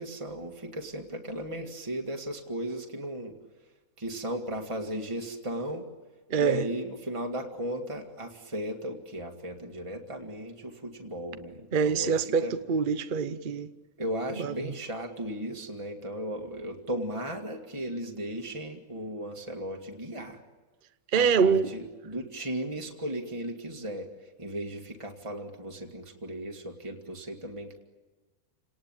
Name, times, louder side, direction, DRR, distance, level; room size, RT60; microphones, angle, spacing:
voice 1, 0.0-3.4 4.0-5.9 6.4-12.5 14.0-20.4 21.1-24.1 24.4-27.8, right 1 dB, 20° right, 2.1 m, -36 dB
voice 2, 6.3-6.6 11.7-13.7 14.4-14.7 21.1-21.7, right 6 dB, 40° right, 0.9 m, -25 dB
29.0 x 19.0 x 8.9 m
omnidirectional pair, 1.5 m